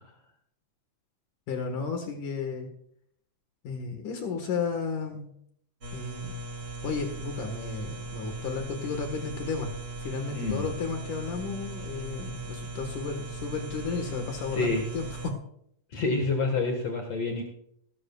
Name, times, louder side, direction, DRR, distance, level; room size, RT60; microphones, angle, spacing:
voice 1, 1.5-2.7 3.6-5.3 5.9-6.4 6.8-9.7 10.0-15.4, left 5 dB, 70° left, 4 dB, 3.1 m, -33 dB
sound 1, 5.8-15.3, right 3 dB, 50° right, 0.8 m, -39 dB
voice 2, 10.3-10.7 14.5-14.8 15.9-17.4, left 3 dB, 55° left, 3 dB, 2.6 m, -28 dB
19.5 x 12.5 x 2.4 m, 0.68 s
omnidirectional pair, 3.8 m